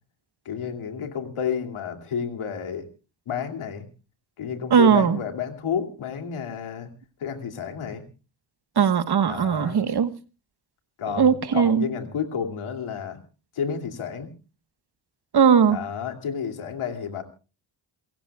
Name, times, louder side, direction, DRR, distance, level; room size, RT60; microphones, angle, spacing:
voice 1, 0.4-2.9 3.3-3.9 4.4-6.9 7.2-8.0 9.3-9.8 11.0-13.2 13.5-14.3 15.7-17.2, left 7 dB, 85° left, 2.9 m, -31 dB
voice 2, 4.7-5.2 8.8-10.1 11.2-11.8 15.3-15.8, right 7 dB, 50° right, 1.4 m, -19 dB
28.5 x 15.5 x 2.4 m
cardioid pair, 65°, 48 cm